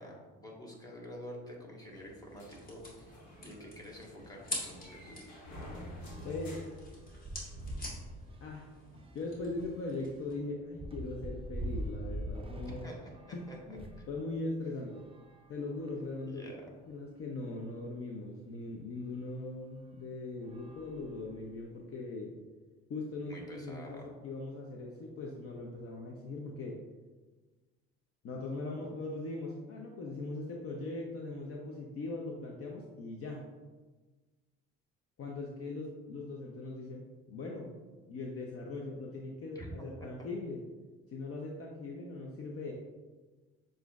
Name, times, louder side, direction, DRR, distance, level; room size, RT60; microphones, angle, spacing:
voice 1, 0.0-5.2 12.6-13.6 14.0-14.1 16.3-16.6 23.3-24.1 39.5-40.3, equal, 10° left, -2 dB, 1.3 m, -48 dB
sound 1, 1.9-10.3, left 1 dB, 30° left, 1.4 m, -47 dB
sound 2, 2.4-7.6, left 1 dB, 75° left, 1.2 m, -49 dB
sound 3, 3.6-3.8 4.2-4.3 4.6-14.1 14.8-16.2 16.9-17.0 17.2-17.3 19.0-19.2 19.8-20.0 20.4-21.7, right 1 dB, 20° right, 0.4 m, -45 dB
voice 2, 6.2-6.6 8.4-8.7 9.1-12.9 13.3-15.1 15.5-16.6 16.9-22.3 22.9-26.8 28.2-33.4 35.2-37.7 38.1-40.6 41.1-42.7, left 2 dB, 50° left, 0 dB, 0.6 m, -40 dB
6.9 x 2.6 x 2.3 m, 1.3 s
supercardioid pair, 75°, 30 cm